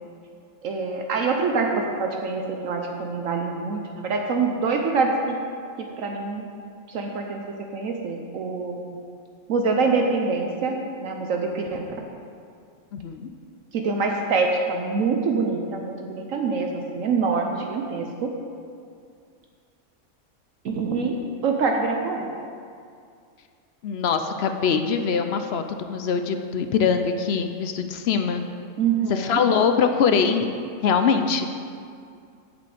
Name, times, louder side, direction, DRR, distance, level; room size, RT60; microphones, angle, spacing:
voice 1, 0.6-5.3 6.0-6.5 6.9-7.4 7.7-8.8 9.5-10.7 11.0-11.8 13.7-18.3 20.6-21.2 21.4-22.3 28.8-29.4, right 4 dB, 70° right, 2 dB, 1.1 m, -25 dB
voice 2, 12.9-13.3 23.8-28.4 29.1-30.5 30.8-31.5, left 6 dB, 65° left, 7 dB, 0.6 m, -23 dB
8.3 x 5.1 x 7.6 m, 2.3 s
omnidirectional pair, 1.5 m